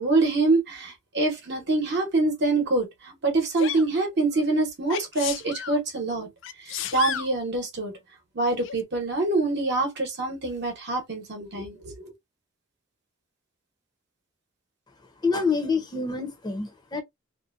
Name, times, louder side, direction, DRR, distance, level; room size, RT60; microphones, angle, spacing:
voice 1, 0.0-6.3 6.6-8.0 8.3-12.1, right 2 dB, 55° right, 0.9 m, -25 dB
Sneeze, 3.6-3.9 4.9-5.8 6.4-7.3 8.6-8.8, left 9 dB, 65° left, 0.3 m, -32 dB
voice 2, 15.2-17.0, left 4 dB, 20° left, 0.6 m, -27 dB
2.6 x 2.1 x 2.4 m
head